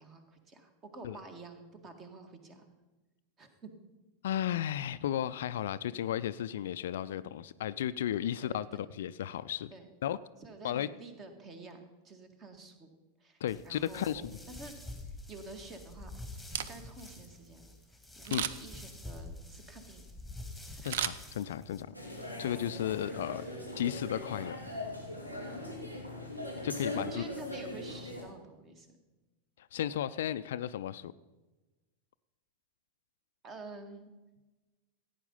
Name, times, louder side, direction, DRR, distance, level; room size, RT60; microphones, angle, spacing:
voice 1, 0.0-2.7 3.4-3.7 8.4-8.8 9.7-9.9 10.4-12.9 13.2-14.7 15.1-16.1 16.5-17.7 18.2-20.1 20.7-20.9 26.8-29.0 33.4-34.1, right 3 dB, 25° right, 7 dB, 1.9 m, -49 dB
voice 2, 4.2-9.7 10.0-10.2 10.6-10.9 13.4-14.3 18.3-18.5 20.8-21.9 22.4-23.5 23.8-24.6 26.6-27.2 29.6-31.1, left 11 dB, 60° left, 14 dB, 0.4 m, -34 dB
sound 1, 13.5-21.8, left 2 dB, ahead, 2.0 m, -47 dB
Camera, 16.4-17.1 18.2-18.8 20.8-21.8 22.2-22.3, right 10 dB, 55° right, 0.7 m, -36 dB
sound 2, 21.9-28.2, left 1 dB, 90° right, 2.8 m, -40 dB
15.5 x 9.1 x 5.5 m, 1.2 s
figure-of-eight pair, 90°, 0 cm